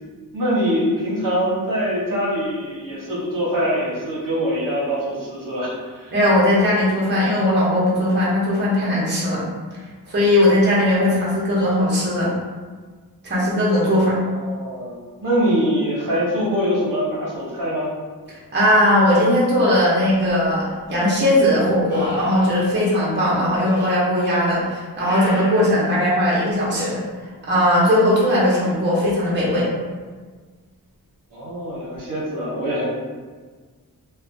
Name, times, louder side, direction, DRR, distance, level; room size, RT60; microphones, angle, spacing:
voice 1, 0.3-6.1 14.1-17.9 31.3-32.9, equal, 55° right, -7 dB, 0.8 m, -24 dB
voice 2, 6.1-9.5 10.1-12.3 13.2-14.2 18.5-27.0 27.5-29.7, left 1 dB, 30° right, -7 dB, 0.7 m, -18 dB
sound 1, 20.3-20.4 21.9-22.6 23.6-23.9 25.0-25.7 26.7-26.9 28.1-28.8 32.0-32.1, equal, 30° left, 0.6 m, -31 dB
2.4 x 2.1 x 2.6 m, 1.4 s
wide cardioid pair, 90°, 37 cm